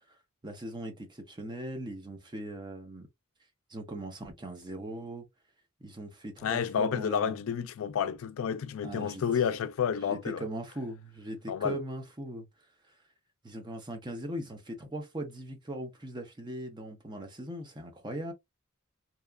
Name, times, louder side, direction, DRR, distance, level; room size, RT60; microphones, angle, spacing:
voice 1, 0.4-3.1 3.7-5.3 5.8-7.4 8.8-9.2 10.1-12.5 12.9-13.0 13.4-18.3, right 1 dB, 20° right, 0.6 m, -39 dB
voice 2, 6.4-10.4 11.5-11.8, left 7 dB, 70° left, 0.3 m, -30 dB
2.8 x 2.3 x 2.2 m
head